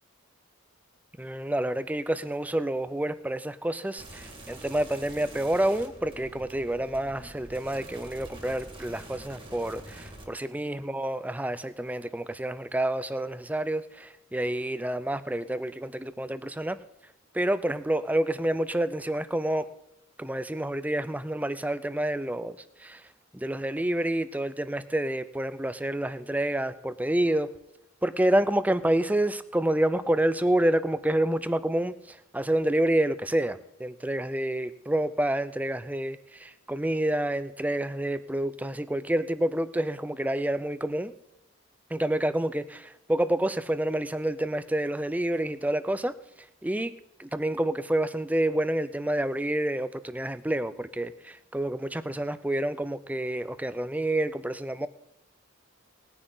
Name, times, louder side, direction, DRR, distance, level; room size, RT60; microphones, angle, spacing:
voice 1, 1.2-16.8 17.3-19.7 20.2-23.0 23.3-27.5 28.0-41.1 41.9-46.2 46.6-54.9, right 1 dB, 5° right, 14 dB, 0.5 m, -28 dB
sound 1, 4.0-10.2, right 1 dB, 25° right, 2.1 m, -45 dB
19.5 x 9.9 x 3.9 m, 0.86 s
head